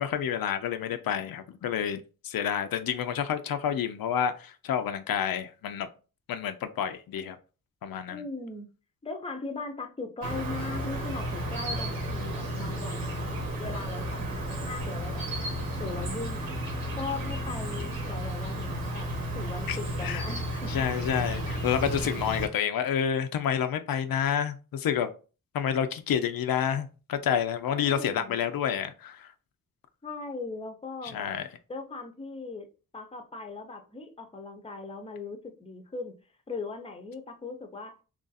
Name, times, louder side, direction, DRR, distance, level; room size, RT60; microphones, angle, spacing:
voice 1, 0.0-5.9 6.3-7.4 7.8-8.2 19.7-19.8 20.0-20.2 20.7-25.1 25.5-29.3 31.1-31.5, left 8 dB, 75° left, 8 dB, 0.5 m, -29 dB
voice 2, 8.1-8.7 9.0-15.5 15.8-16.5 16.9-19.1 19.3-20.7 27.7-28.4 30.0-31.3 31.7-32.7 32.9-36.2 36.5-38.0, left 3 dB, 15° left, 5 dB, 0.6 m, -39 dB
Insect, 10.2-22.5, equal, 85° right, 1.3 m, -33 dB
3.0 x 2.5 x 4.0 m, 0.35 s
wide cardioid pair, 110°, 35 cm